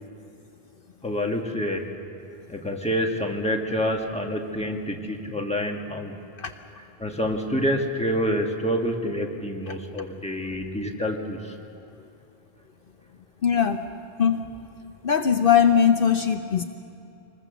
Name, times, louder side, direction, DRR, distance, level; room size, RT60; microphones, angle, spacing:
voice 1, 1.0-1.9 2.5-6.1 7.0-11.5, equal, 5° left, 1 dB, 1.7 m, -27 dB
voice 2, 13.4-13.8 14.2-14.5 15.0-16.6, left 8 dB, 65° left, 7 dB, 0.9 m, -20 dB
24.5 x 20.5 x 7.0 m, 2.7 s
omnidirectional pair, 1.0 m